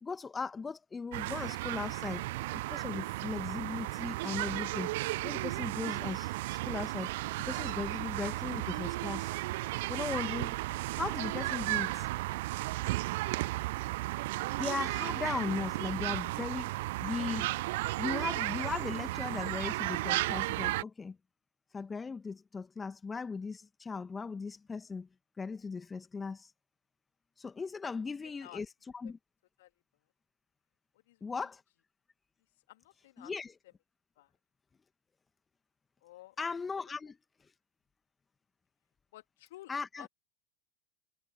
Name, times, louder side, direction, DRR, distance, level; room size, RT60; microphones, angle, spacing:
voice 1, 0.0-2.2 2.5-4.9 5.2-7.1 7.4-9.3 9.9-10.6 10.9-12.1 14.6-16.8 17.0-17.5 18.0-21.2 21.7-25.1 25.4-26.5 27.4-28.7 28.9-29.2 31.2-31.6 33.2-33.5 36.4-37.2 39.7-40.1, left 4 dB, 15° left, 1.5 m, -38 dB
sound 1, 1.1-20.8, right 19 dB, 55° right, 0.4 m, -34 dB
voice 2, 28.2-28.6 29.0-29.1 29.6-29.7 31.1-31.5 32.7-33.3 34.2-34.3 36.0-36.4 39.1-39.7 40.0-40.1, left 16 dB, 60° left, 2.5 m, -53 dB
figure-of-eight pair, 85°, 0 cm